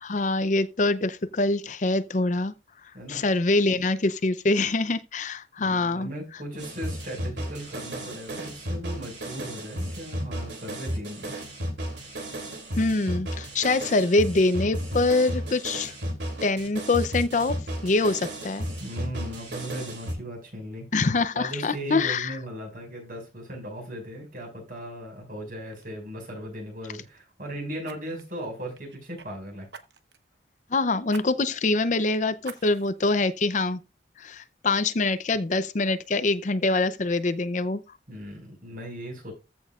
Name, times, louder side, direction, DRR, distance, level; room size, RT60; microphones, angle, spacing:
voice 1, 0.0-2.5 3.1-6.1 12.8-15.9 16.4-17.5 17.8-18.6 20.9-22.4 30.7-33.8 34.2-37.8, left 3 dB, 45° left, 0.6 m, -24 dB
voice 2, 5.6-11.3 18.8-20.9 21.3-29.7 38.1-39.3, equal, 50° right, 5.6 m, -37 dB
sound 1, 6.6-20.1, equal, 90° right, 2.8 m, -33 dB
Fire, 25.1-25.3 25.7-25.9 27.8-29.3 29.7-30.3 31.1-31.3 31.7-31.8 32.4-33.0 33.6-33.7, right 5 dB, 75° right, 1.0 m, -46 dB
14.5 x 6.2 x 2.4 m
head